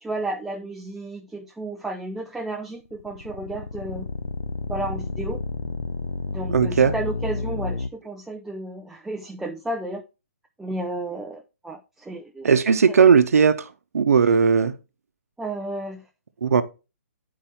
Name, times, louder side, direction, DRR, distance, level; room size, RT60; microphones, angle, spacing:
voice 1, 0.0-4.1 4.7-5.4 6.3-10.0 10.6-12.5 12.9-13.0 15.4-16.1, right 2 dB, 5° right, 0.5 m, -32 dB
sound 1, 2.8-7.9, left 3 dB, 90° left, 0.6 m, -30 dB
voice 2, 6.5-6.9 12.4-13.6 13.9-14.7 16.4-16.6, right 6 dB, 80° right, 0.8 m, -17 dB
9.0 x 4.8 x 4.4 m
hypercardioid pair, 145°, 8 cm